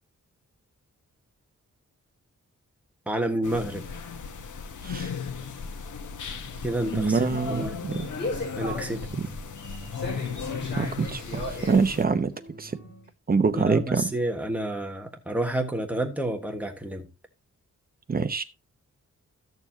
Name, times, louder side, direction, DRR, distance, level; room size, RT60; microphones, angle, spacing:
voice 1, 3.1-3.9 6.6-7.8 8.6-9.0 13.5-17.1, right 1 dB, 5° right, 1.4 m, -29 dB
sound 1, 3.4-12.0, left 6 dB, 85° left, 1.0 m, -36 dB
sound 2, 6.2-13.1, left 1 dB, 40° left, 5.3 m, -38 dB
voice 2, 6.9-8.1 9.1-9.2 10.7-12.3 12.6-12.7 13.3-14.0 18.1-18.4, right 4 dB, 30° right, 0.8 m, -25 dB
13.5 x 6.9 x 2.8 m
wide cardioid pair, 120°, 30 cm